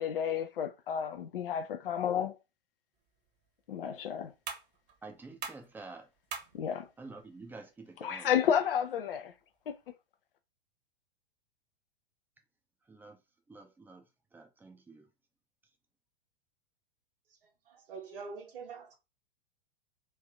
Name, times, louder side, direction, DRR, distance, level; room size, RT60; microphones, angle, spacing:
voice 1, 0.0-2.3 3.7-4.3 6.5-6.9 8.0-9.3, left 8 dB, 60° left, 0.7 m, -31 dB
sound 1, 2.9-9.9, right 6 dB, 35° right, 1.1 m, -49 dB
voice 2, 5.0-6.1 7.0-8.3 12.9-13.2 13.5-14.0 14.3-15.1, right 3 dB, 5° right, 0.6 m, -49 dB
voice 3, 17.3-18.9, right 5 dB, 60° right, 1.4 m, -45 dB
3.3 x 2.6 x 3.4 m
figure-of-eight pair, 100°, 31 cm